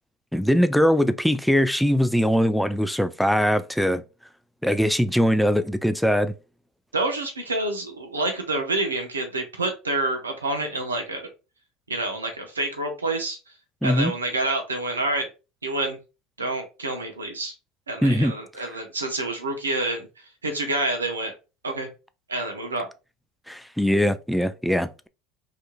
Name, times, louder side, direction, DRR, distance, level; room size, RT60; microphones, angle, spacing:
voice 1, 0.3-4.0 4.6-6.3 13.8-14.1 18.0-18.3 23.5-25.1, equal, ahead, 0.3 m, -21 dB
voice 2, 6.9-11.3 11.9-13.4 13.8-15.3 15.6-16.0 16.4-17.5 17.9-20.1 20.4-21.3 21.6-21.9 22.3-22.9, right 2 dB, 90° right, 0.5 m, -27 dB
2.8 x 2.5 x 2.3 m
hypercardioid pair, 75°, 0 cm